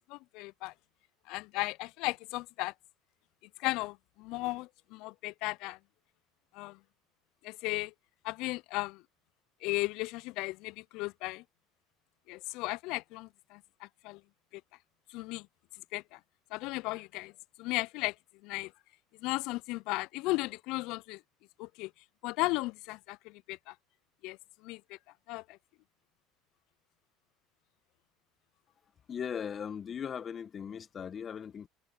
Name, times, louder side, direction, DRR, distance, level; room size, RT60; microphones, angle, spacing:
voice 1, 0.1-0.7 1.3-2.7 3.6-5.8 6.5-6.8 7.4-7.9 8.2-9.0 9.6-11.4 12.3-14.2 15.1-15.5 15.9-16.2 16.5-17.3 17.6-18.1 18.4-18.7 19.2-21.2 21.6-21.9 22.2-23.7 24.2-24.4 24.6-25.0 25.3-25.6, left 22 dB, 70° left, 0.5 m, -35 dB
voice 2, 29.1-31.7, left 7 dB, 40° left, 1.6 m, -38 dB
hypercardioid pair, 75°, 0 cm